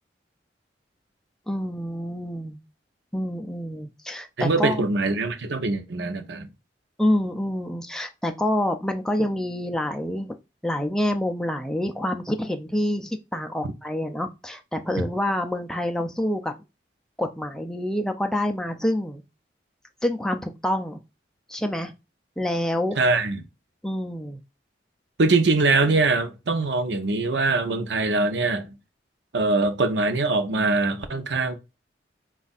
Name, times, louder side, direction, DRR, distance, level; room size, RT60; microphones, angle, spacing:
voice 1, 1.5-2.6 3.1-4.8 7.0-10.3 10.6-16.5 17.2-19.2 20.0-21.0 21.5-21.9 22.4-23.0 23.8-24.4, left 1 dB, 5° left, 0.4 m, -27 dB
voice 2, 4.4-6.5 23.0-23.4 25.2-28.8 29.3-31.5, right 3 dB, 75° right, 0.7 m, -23 dB
4.5 x 2.4 x 4.0 m
head